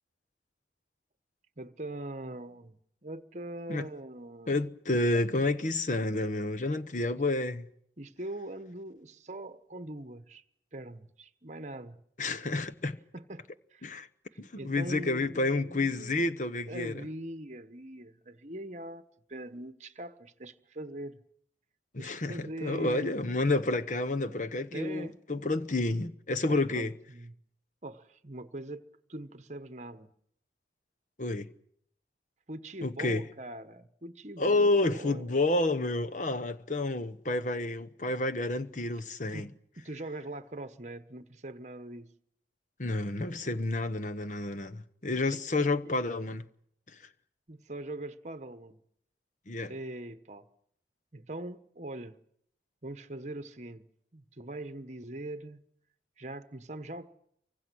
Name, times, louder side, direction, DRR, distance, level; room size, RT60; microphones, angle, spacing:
voice 1, 1.6-4.6 7.1-7.2 8.0-10.4 10.7-12.0 13.1-13.9 14.3-16.3 16.7-19.0 19.3-21.2 22.0-23.1 24.7-25.1 26.5-27.3 27.8-28.8 29.1-30.1 32.5-35.3 39.3-39.5 39.8-42.1 45.3-45.7 47.5-48.8 49.7-50.5 51.1-52.2 52.8-53.8 54.1-55.6 56.2-57.1, right 1 dB, 40° right, 1.2 m, -42 dB
voice 2, 4.5-7.7 12.2-13.0 13.8-14.1 14.4-17.0 21.9-26.9 31.2-31.5 32.8-33.2 34.4-39.5 42.8-46.4 46.9-47.0 49.5-49.7, left 2 dB, 45° left, 1.0 m, -30 dB
29.0 x 24.5 x 6.3 m
head